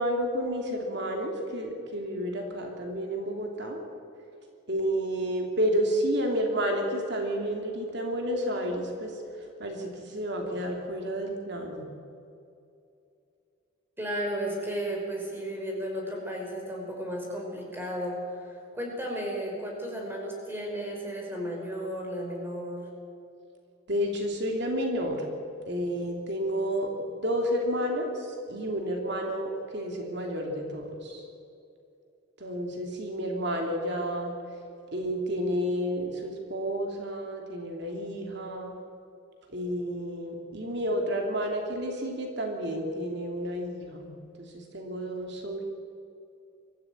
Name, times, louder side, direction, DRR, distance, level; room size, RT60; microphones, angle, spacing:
voice 1, 0.0-3.8 4.7-9.1 9.6-11.9 23.9-25.2 25.7-26.9 27.2-31.2 32.4-34.3 34.9-38.7 39.5-44.1 44.4-45.6, equal, 55° right, 2 dB, 2.9 m, -30 dB
voice 2, 14.0-22.9, equal, 10° right, -1 dB, 5.3 m, -34 dB
23.5 x 15.0 x 8.9 m, 2.6 s
head